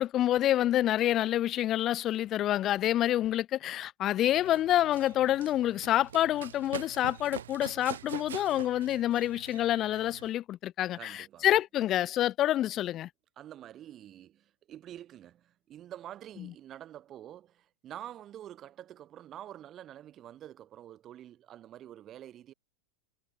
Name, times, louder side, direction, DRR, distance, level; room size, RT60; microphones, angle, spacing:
voice 1, 0.0-13.1 16.4-16.5, left 13 dB, 30° left, 2.6 m, -27 dB
Run, 4.3-10.3, right 10 dB, 65° right, 4.4 m, -45 dB
voice 2, 10.9-11.5 13.4-22.5, right 11 dB, 30° right, 6.7 m, -47 dB
figure-of-eight pair, 90°, 0 cm